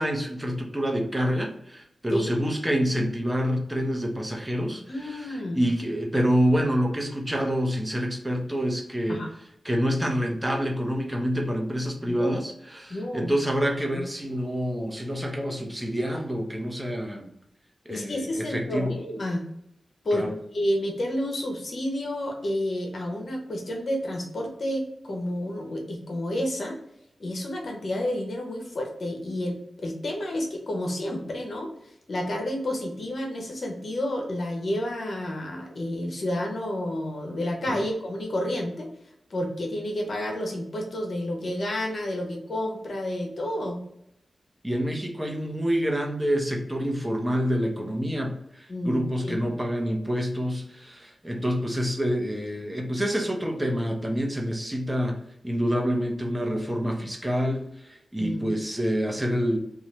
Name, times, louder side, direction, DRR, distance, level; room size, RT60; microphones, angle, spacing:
voice 1, 0.0-9.2 9.6-17.3 17.8-19.0 20.1-20.3 37.7-37.8 44.6-59.6, equal, 15° right, 1 dB, 0.8 m, -27 dB
voice 2, 4.9-5.6 9.1-9.3 12.1-12.4 12.9-13.3 13.9-14.1 17.9-19.4 20.0-20.3 20.5-26.8 27.2-31.7 32.1-38.9 39.3-43.8 48.7-49.4 58.2-58.5, left 1 dB, 65° left, 1 dB, 0.8 m, -30 dB
2.7 x 2.4 x 3.1 m, 0.75 s
cardioid pair, 45°, 0 cm